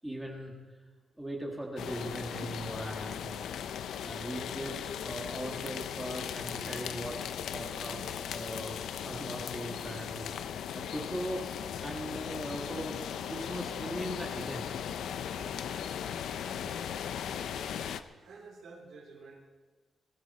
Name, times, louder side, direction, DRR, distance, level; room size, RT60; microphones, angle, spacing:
voice 1, 0.0-0.5 1.2-3.3 4.0-7.2 7.5-8.8 9.0-10.3 10.7-11.4 11.8-13.0 13.3-14.7 15.3-15.6, right 1 dB, 5° right, 0 dB, 1.8 m, -39 dB
sound 1, 1.8-18.0, left 8 dB, 90° left, 0.7 m, -38 dB
voice 2, 16.5-17.8 18.1-19.5, right 4 dB, 60° right, -2 dB, 3.2 m, -52 dB
20.0 x 14.5 x 4.2 m, 1.3 s
wide cardioid pair, 175°, 0 cm